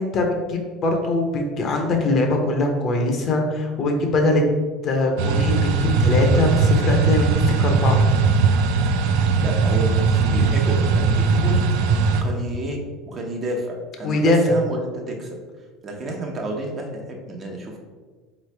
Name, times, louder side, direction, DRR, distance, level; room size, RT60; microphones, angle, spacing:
voice 1, 0.0-4.4 4.8-8.0 14.0-14.4, left 2 dB, 45° left, 3 dB, 0.7 m, -22 dB
sound 1, 5.2-12.2, right 4 dB, 75° right, 0.4 m, -19 dB
voice 2, 9.4-11.7 12.2-15.4 15.8-17.8, right 1 dB, 35° right, 1 dB, 0.8 m, -30 dB
3.8 x 3.2 x 3.3 m, 1.4 s
supercardioid pair, 105°, 0 cm